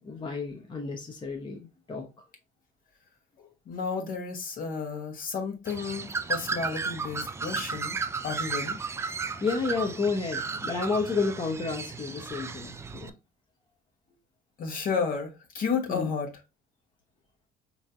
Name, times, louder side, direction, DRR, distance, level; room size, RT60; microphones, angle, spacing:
voice 1, 0.0-2.2 9.4-13.1 15.9-16.1, left 4 dB, 30° left, 0.8 m, -31 dB
voice 2, 3.4-8.0 8.2-8.8 14.6-16.3, left 5 dB, 55° left, 1.3 m, -32 dB
Bird, 5.7-13.1, right 4 dB, 15° right, 0.3 m, -34 dB
4.3 x 3.1 x 2.5 m
cardioid pair, 110°, 17 cm